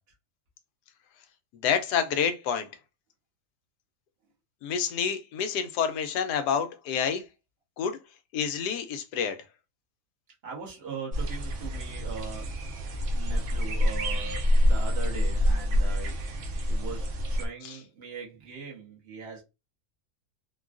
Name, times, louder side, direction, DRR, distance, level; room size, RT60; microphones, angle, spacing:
voice 1, 1.6-2.7 4.6-7.2 7.8-8.0 8.3-9.4 17.6-17.8, left 7 dB, 85° left, 1.2 m, -28 dB
voice 2, 10.4-12.5 13.1-16.2 16.7-19.4, right 5 dB, 40° right, 1.2 m, -40 dB
sound 1, 11.1-17.5, equal, 65° right, 0.8 m, -27 dB
3.7 x 2.3 x 2.4 m
omnidirectional pair, 1.7 m